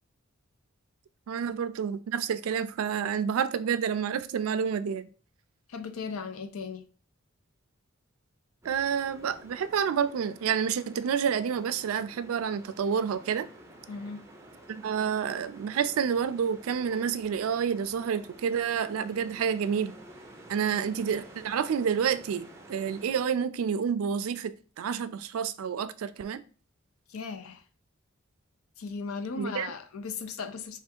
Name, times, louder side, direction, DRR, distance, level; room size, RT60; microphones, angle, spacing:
voice 1, 1.3-5.1 8.6-13.5 14.7-19.9 20.5-26.4 29.4-29.7, right 7 dB, 80° right, 0.3 m, -29 dB
voice 2, 5.7-6.9 13.9-14.3 20.7-20.8 27.1-27.6 28.8-30.8, left 5 dB, 85° left, 0.5 m, -37 dB
sound 1, 8.6-23.2, right 1 dB, 15° right, 0.5 m, -51 dB
3.3 x 2.4 x 4.4 m
head